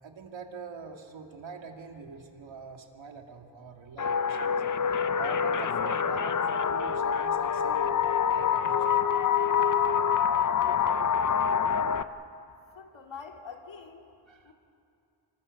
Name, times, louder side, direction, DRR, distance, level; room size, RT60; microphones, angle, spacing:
voice 1, 0.0-4.6 4.9-7.9 8.3-9.0 14.3-14.5, right 5 dB, 80° right, 3 dB, 2.5 m, -44 dB
sound 1, 4.0-12.0, left 7 dB, 45° left, 0.7 m, -26 dB
voice 2, 12.7-14.1 14.4-14.5, left 6 dB, 75° left, 3 dB, 2.5 m, -45 dB
27.5 x 23.0 x 6.6 m, 2.6 s
wide cardioid pair, 140°, 45 cm